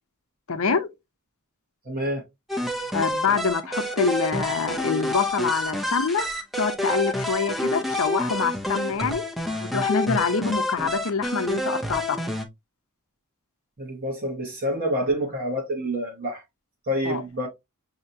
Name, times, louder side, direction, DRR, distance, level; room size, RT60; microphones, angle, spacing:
voice 1, 0.5-0.9 2.9-6.3 6.6-9.2 9.6-12.2 17.0-17.2, left 5 dB, 65° left, 0.7 m, -25 dB
voice 2, 1.9-2.2 13.8-16.4 16.9-17.5, equal, 40° right, 1.0 m, -27 dB
sound 1, 2.5-12.5, left 1 dB, ahead, 0.6 m, -28 dB
6.4 x 2.8 x 2.7 m
head